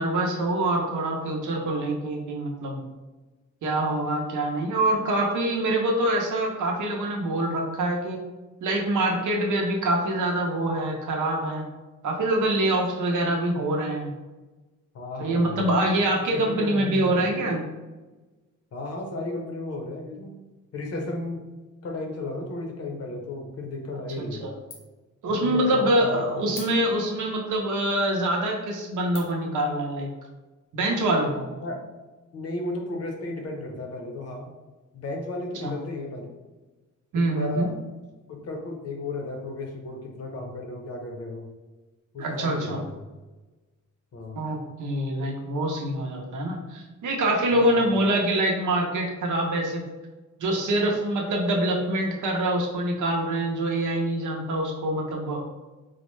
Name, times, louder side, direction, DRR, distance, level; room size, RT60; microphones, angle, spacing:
voice 1, 0.0-2.8 3.6-8.2 8.6-11.6 12.0-14.1 15.2-17.6 24.2-24.5 25.2-30.1 30.7-31.4 35.6-35.7 37.1-37.7 42.2-42.8 44.4-49.8 50.4-55.4, right 1 dB, 70° right, 1 dB, 0.7 m, -25 dB
voice 2, 14.9-15.7 16.3-17.4 18.7-20.3 20.7-21.5 21.8-24.5 25.2-26.6 31.6-31.8 32.3-34.5 34.9-36.3 37.1-37.7 38.3-41.5 42.1-43.0 44.1-44.4 47.5-47.8, left 2 dB, 50° left, 1 dB, 0.7 m, -34 dB
sound 1, 24.1-24.5 24.7-25.1 25.5-25.6 26.5-27.2 27.8-27.9 28.5-28.7 29.1-29.5, left 4 dB, 80° left, 0.9 m, -43 dB
3.9 x 2.1 x 3.1 m, 1.2 s
wide cardioid pair, 155°, 31 cm